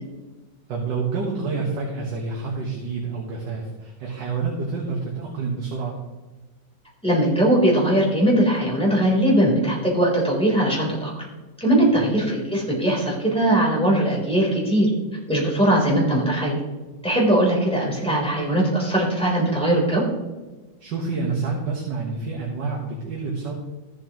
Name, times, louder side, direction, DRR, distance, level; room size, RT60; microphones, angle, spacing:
voice 1, 0.7-6.0 11.9-12.0 20.8-23.5, right 4 dB, 65° right, -1 dB, 2.0 m, -28 dB
voice 2, 7.0-11.1 11.6-14.9 15.3-16.6 17.0-20.0, right 1 dB, 5° left, -4 dB, 3.3 m, -20 dB
14.0 x 7.8 x 3.0 m, 1.2 s
omnidirectional pair, 2.1 m